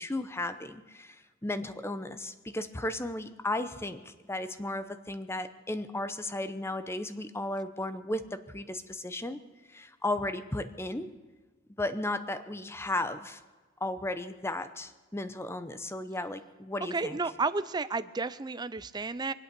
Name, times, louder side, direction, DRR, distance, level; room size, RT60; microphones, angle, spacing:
voice 1, 0.0-9.4 9.7-11.1 11.8-13.4 13.8-17.2, left 1 dB, 15° left, 11 dB, 0.7 m, -35 dB
voice 2, 16.9-19.3, right 3 dB, 20° right, 14 dB, 0.5 m, -32 dB
23.5 x 8.5 x 6.8 m, 1.3 s
head